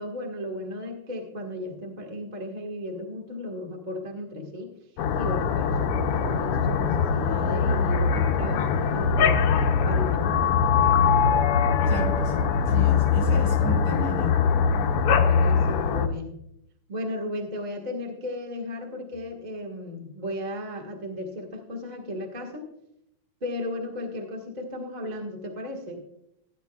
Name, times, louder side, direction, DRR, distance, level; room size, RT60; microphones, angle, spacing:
voice 1, 0.0-4.7 5.2-9.5 9.8-10.4 15.1-16.3 16.9-22.7 23.4-26.0, left 1 dB, 25° right, 0 dB, 0.9 m, -35 dB
sound 1, 5.0-16.1, left 6 dB, 85° left, 1.2 m, -22 dB
voice 2, 11.9-14.3, right 2 dB, 45° right, -2 dB, 2.6 m, -32 dB
16.0 x 9.7 x 2.3 m, 0.79 s
omnidirectional pair, 3.4 m